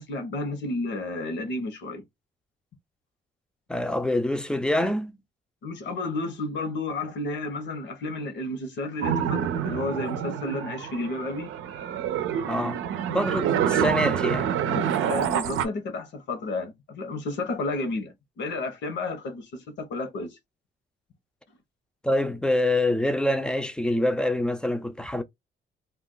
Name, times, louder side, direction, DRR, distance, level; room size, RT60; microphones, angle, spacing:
voice 1, 0.0-2.0 5.6-11.5 14.6-20.4, left 2 dB, 65° left, 1.0 m, -32 dB
voice 2, 3.7-5.1 12.5-12.8 13.1-14.5 22.0-25.2, left 1 dB, 5° left, 0.5 m, -25 dB
sound 1, 9.0-15.6, right 9 dB, 85° right, 0.6 m, -27 dB
2.5 x 2.3 x 3.8 m
cardioid pair, 90°, 20 cm